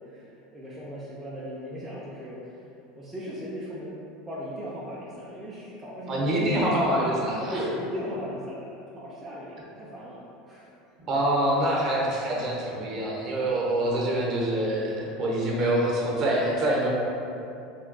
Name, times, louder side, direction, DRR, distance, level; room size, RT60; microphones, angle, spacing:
voice 1, 0.1-2.6 2.9-4.0 4.3-6.8 7.4-10.7, equal, 10° right, -8 dB, 0.4 m, -37 dB
voice 2, 6.1-7.6 11.1-16.9, right 1 dB, 35° right, -3 dB, 0.7 m, -25 dB
3.3 x 2.6 x 3.8 m, 2.6 s
supercardioid pair, 160°, 0 cm